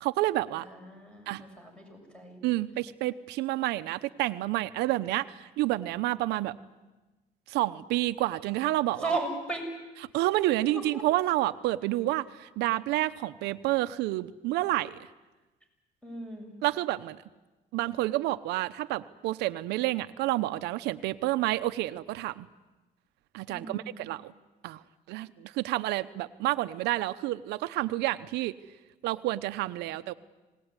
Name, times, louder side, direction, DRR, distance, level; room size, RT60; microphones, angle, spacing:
voice 1, 0.0-0.7 1.3-1.4 2.4-6.6 7.5-9.2 10.1-15.0 16.6-17.2 17.7-22.5 23.3-24.3 24.6-24.8 25.1-28.5 29.0-30.1, right 17 dB, 90° right, 11 dB, 0.9 m, -29 dB
voice 2, 0.6-2.4 9.0-9.7 10.7-11.0 16.0-16.5 23.5-24.0, right 2 dB, 5° left, 3 dB, 7.2 m, -36 dB
27.5 x 19.0 x 9.7 m, 1.2 s
cardioid pair, 110°, 17 cm